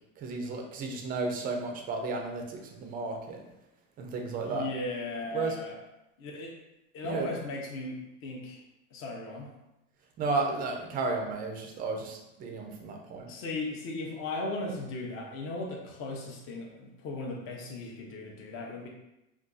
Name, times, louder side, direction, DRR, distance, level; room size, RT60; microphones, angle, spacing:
voice 1, 0.2-3.4 4.0-4.7 5.3-5.6 7.0-7.3 10.2-13.3, right 3 dB, 25° right, 2 dB, 0.4 m, -33 dB
voice 2, 4.4-5.8 6.2-6.5 6.9-8.6 8.9-9.5 13.3-18.9, left 2 dB, 35° left, 0 dB, 0.6 m, -37 dB
2.5 x 2.3 x 3.8 m, 0.92 s
supercardioid pair, 135°, 38 cm